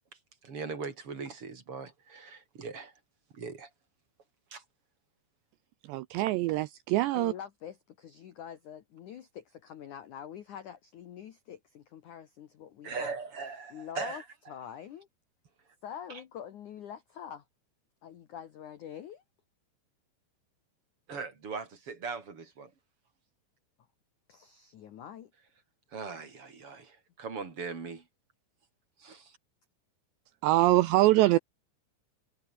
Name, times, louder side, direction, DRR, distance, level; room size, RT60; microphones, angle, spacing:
voice 1, 0.4-2.9 3.3-3.7 4.5-4.6 12.8-14.2 21.1-22.7 25.9-28.0 29.0-29.4, right 5 dB, 35° right, 3.2 m, -40 dB
voice 2, 5.9-7.3 30.4-31.4, right 17 dB, 80° right, 2.6 m, -24 dB
voice 3, 7.1-13.1 13.7-14.2 14.5-15.1 15.8-17.4 18.0-19.2 24.3-25.3, left 9 dB, 70° left, 1.9 m, -45 dB
omnidirectional pair, 5.6 m